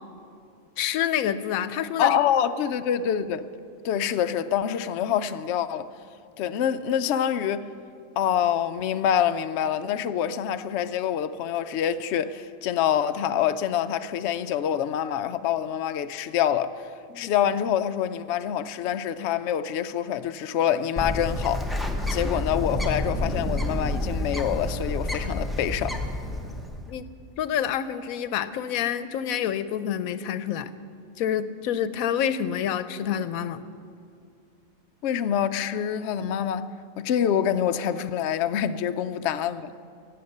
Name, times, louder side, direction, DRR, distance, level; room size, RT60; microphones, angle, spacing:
voice 1, 0.8-2.2 17.1-17.3 26.9-27.1 27.4-30.7 31.2-33.6, left 9 dB, 90° left, 1.1 m, -27 dB
voice 2, 2.0-3.5 3.8-5.9 6.4-7.7 8.2-16.9 17.2-21.8 22.1-26.0 35.0-39.7, left 9 dB, 65° left, 0.7 m, -26 dB
Bird, 21.0-26.9, left 1 dB, ahead, 0.7 m, -29 dB
17.5 x 7.8 x 6.6 m
omnidirectional pair, 1.4 m